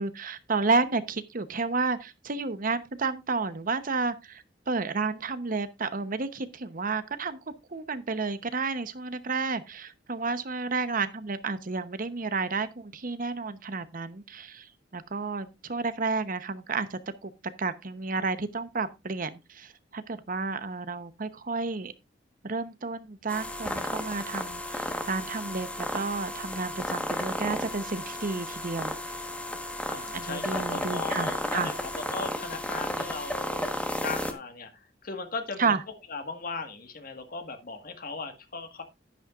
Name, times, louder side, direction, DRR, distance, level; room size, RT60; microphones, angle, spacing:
voice 1, 0.0-7.4 7.7-14.7 14.9-17.3 17.6-21.9 22.4-29.2 30.1-31.7 35.6-35.8, right 4 dB, 50° right, 0.9 m, -31 dB
sound 1, 23.3-34.3, left 1 dB, 5° left, 1.3 m, -33 dB
voice 2, 29.9-33.7 34.0-38.8, left 4 dB, 55° left, 1.7 m, -38 dB
11.0 x 10.5 x 2.5 m
head